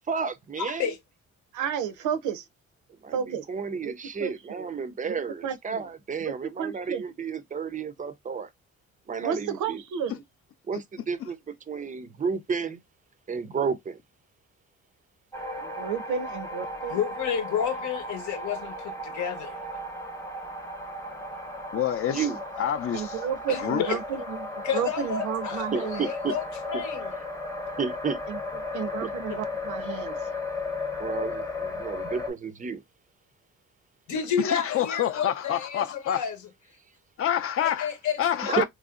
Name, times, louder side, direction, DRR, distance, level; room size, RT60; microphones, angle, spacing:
voice 1, 0.1-0.9 3.0-8.5 9.1-9.8 10.7-12.8 13.3-14.0 22.1-22.4 25.7-26.3 26.7-26.8 27.8-28.2 29.0-29.1 31.0-32.8 38.4-38.6, right 5 dB, 25° right, 0.4 m, -32 dB
voice 2, 0.6-1.0 16.9-19.6 23.5-24.0 24.6-27.1 34.1-36.4 37.6-38.6, left 8 dB, 75° left, 0.9 m, -31 dB
voice 3, 1.5-2.4 3.1-3.5 3.8-3.9 4.2-4.7 5.1-5.2 5.4-5.8 6.6-7.0 9.2-10.2 15.6-17.0 22.9-26.0 28.3-28.4 28.7-30.2, right 7 dB, 80° right, 0.5 m, -32 dB
sound 1, 15.3-32.3, left 2 dB, 10° left, 0.8 m, -35 dB
voice 4, 21.7-22.3 22.6-23.2 23.6-23.8 34.4-36.2 37.2-37.9 38.2-38.6, left 10 dB, 50° left, 0.5 m, -27 dB
3.0 x 2.6 x 2.4 m
cardioid pair, 90°, 30 cm